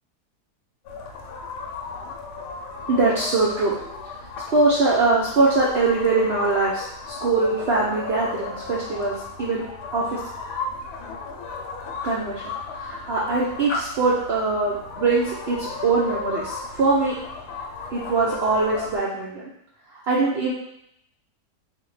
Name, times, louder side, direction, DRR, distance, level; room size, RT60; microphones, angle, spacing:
sound 1, 0.8-19.0, left 4 dB, 75° left, 1.1 m, -35 dB
voice 1, 2.9-3.7 4.5-10.2 11.9-12.4 12.7-17.1 17.9-19.4 20.1-20.5, right 3 dB, 80° right, -6 dB, 0.5 m, -22 dB
3.4 x 2.1 x 3.1 m, 0.74 s
omnidirectional pair, 1.8 m